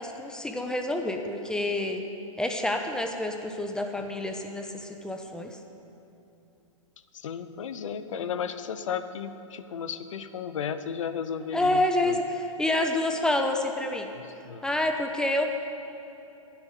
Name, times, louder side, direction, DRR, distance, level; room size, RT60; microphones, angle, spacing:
voice 1, 0.0-2.0 2.4-5.6 11.5-14.1 14.6-15.5, left 1 dB, 5° left, 4 dB, 0.9 m, -28 dB
voice 2, 7.1-12.2 14.4-14.6, left 7 dB, 65° left, 11 dB, 0.9 m, -34 dB
10.0 x 9.8 x 9.2 m, 2.9 s
hypercardioid pair, 120°, 17 cm